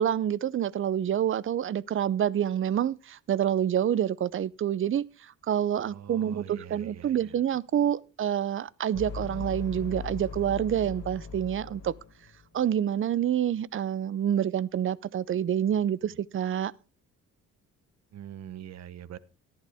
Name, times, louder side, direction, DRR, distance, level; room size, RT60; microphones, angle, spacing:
voice 1, 0.0-11.9 12.5-16.7, right 10 dB, 45° right, 0.6 m, -27 dB
voice 2, 5.8-7.4 18.1-19.2, right 10 dB, 60° right, 0.9 m, -44 dB
sound 1, 8.9-12.5, left 5 dB, 55° left, 6.4 m, -39 dB
14.0 x 11.0 x 3.5 m
cardioid pair, 90°, 30 cm